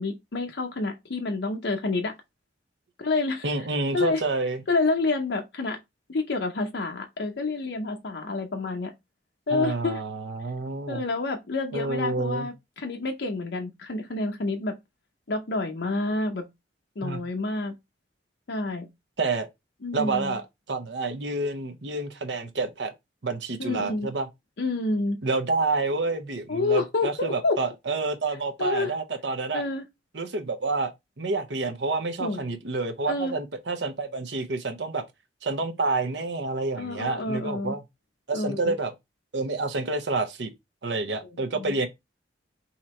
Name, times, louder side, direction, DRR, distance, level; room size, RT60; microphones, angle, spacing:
voice 1, 0.0-2.1 3.0-3.5 3.9-4.2 4.7-5.8 6.1-8.9 9.5-10.0 10.9-14.7 15.3-16.5 17.0-17.7 18.5-18.9 19.8-20.4 23.6-24.1 24.6-25.2 26.5-27.6 28.6-28.9 29.5-29.8 32.2-32.4 33.1-33.3 36.8-37.7 38.3-38.7 41.5-41.7, left 3 dB, 75° left, 0.7 m, -28 dB
voice 2, 3.4-4.6 9.5-11.0 11.7-12.5 17.0-17.2 19.2-19.5 19.9-22.9 23.2-24.3 25.2-29.6 30.1-35.0 35.4-37.8 38.3-38.9 39.3-40.5 40.8-41.9, right 3 dB, 80° right, 0.8 m, -28 dB
3.8 x 2.9 x 4.3 m
head